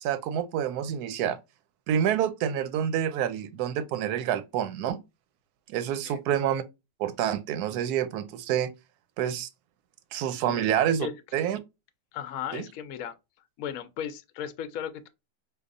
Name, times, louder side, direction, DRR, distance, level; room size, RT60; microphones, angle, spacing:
voice 1, 0.0-1.4 1.9-5.0 5.7-6.6 7.0-8.7 9.2-9.5 10.1-11.1 11.3-11.6 12.5-12.7, right 9 dB, 70° right, 1.0 m, -27 dB
voice 2, 12.1-13.1 13.6-15.1, left 9 dB, 70° left, 0.8 m, -36 dB
4.7 x 2.4 x 2.5 m
omnidirectional pair, 1.8 m